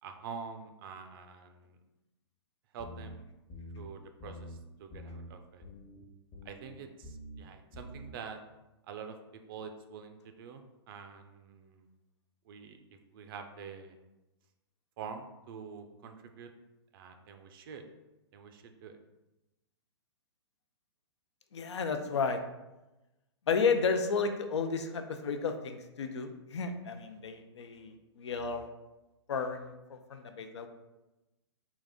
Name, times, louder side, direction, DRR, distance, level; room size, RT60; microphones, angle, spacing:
voice 1, 0.0-1.8 2.7-3.3 3.8-5.6 6.4-8.4 8.9-11.9 12.5-12.8 13.1-14.0 15.0-16.5 16.9-17.8 18.3-19.0, right 6 dB, 50° right, 6 dB, 0.5 m, -46 dB
sound 1, 2.8-3.1 3.5-3.9 4.2-4.6 4.9-5.3 5.6-6.0 6.3-6.7 7.0-7.4 7.7-8.1, left 1 dB, 40° left, 0.9 m, -46 dB
voice 2, 21.5-22.4 23.5-28.7 29.3-30.7, left 5 dB, 80° left, 7 dB, 0.5 m, -32 dB
3.9 x 2.4 x 3.6 m, 1.0 s
hypercardioid pair, 125°, 14 cm